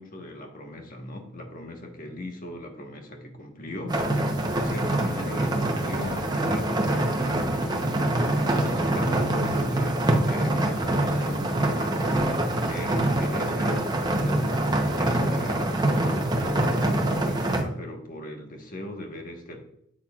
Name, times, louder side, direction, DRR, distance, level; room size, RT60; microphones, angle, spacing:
voice 1, 0.0-4.0 4.5-7.8 8.4-19.6, left 1 dB, 45° left, 3 dB, 1.3 m, -38 dB
sound 1, 3.9-17.6, right 1 dB, 20° right, 0.8 m, -25 dB
8.1 x 7.5 x 2.4 m, 0.72 s
head